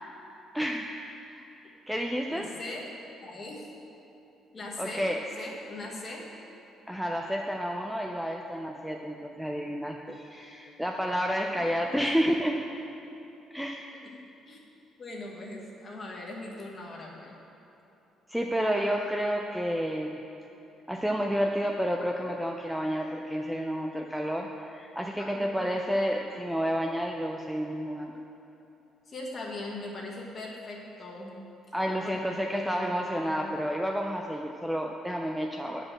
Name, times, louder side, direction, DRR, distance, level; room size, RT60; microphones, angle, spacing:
voice 1, 0.5-0.9 1.3-2.5 4.8-5.2 6.9-12.7 13.5-13.9 18.3-20.2 20.9-28.1 31.7-35.9, equal, ahead, 1 dB, 0.3 m, -30 dB
voice 2, 2.3-2.9 3.2-3.7 4.5-5.1 5.4-6.3 11.5-12.2 13.9-14.6 15.0-17.3 25.2-25.6 29.1-31.4 32.0-32.1 32.4-32.9 33.2-33.4, left 2 dB, 25° left, -2 dB, 1.3 m, -41 dB
9.5 x 5.0 x 7.4 m, 2.9 s
cardioid pair, 170°, 0 cm